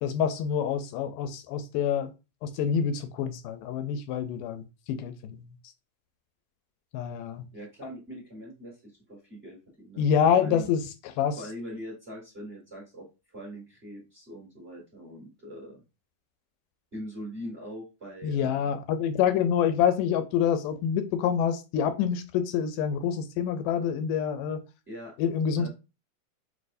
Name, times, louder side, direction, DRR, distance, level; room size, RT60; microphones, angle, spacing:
voice 1, 0.0-2.1 2.4-5.5 6.9-7.5 10.0-11.4 18.2-24.6 25.2-25.7, left 8 dB, 85° left, 2.1 m, -27 dB
voice 2, 7.5-10.0 10.3-10.7 11.4-15.8 16.9-18.7 24.9-25.1 25.6-25.7, equal, 25° right, 1.3 m, -42 dB
6.1 x 2.6 x 2.6 m
omnidirectional pair, 3.8 m